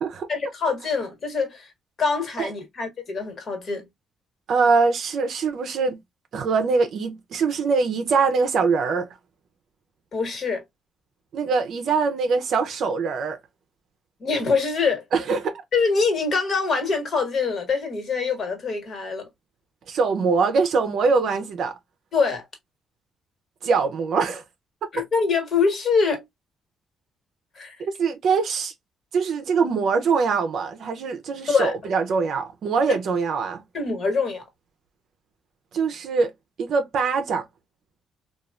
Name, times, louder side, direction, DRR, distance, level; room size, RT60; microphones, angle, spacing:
voice 1, 0.3-1.7 2.0-3.8 10.1-10.6 14.2-15.0 15.7-19.3 22.1-22.4 24.9-26.2 27.5-27.8 31.5-31.7 32.9-33.0 33.7-34.4, left 4 dB, 50° left, 1.3 m, -24 dB
voice 2, 4.5-6.0 6.3-9.1 11.3-13.4 15.1-15.6 19.9-21.7 23.6-24.4 27.8-28.7 29.1-33.6 35.7-36.3 36.6-37.4, right 4 dB, 65° right, 0.5 m, -23 dB
3.0 x 2.3 x 2.3 m
cardioid pair, 90°, 0 cm